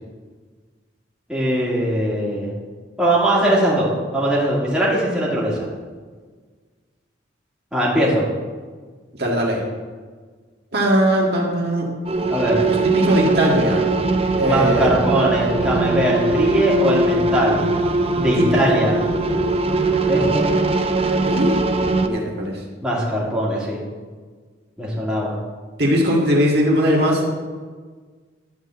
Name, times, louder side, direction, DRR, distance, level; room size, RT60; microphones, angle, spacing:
voice 1, 1.3-2.5 3.0-5.7 7.7-8.3 12.3-12.7 14.4-17.7 18.2-19.0 20.1-20.5 22.8-23.8 24.8-25.3, right 1 dB, 5° right, -6 dB, 2.4 m, -20 dB
voice 2, 9.2-9.6 10.7-11.9 12.7-13.9 14.4-14.9 18.3-18.9 21.1-21.6 22.0-22.5 25.8-27.3, equal, 60° right, -2 dB, 1.9 m, -19 dB
sound 1, 12.0-22.1, right 2 dB, 30° right, 0.6 m, -21 dB
11.5 x 4.7 x 7.8 m, 1.5 s
head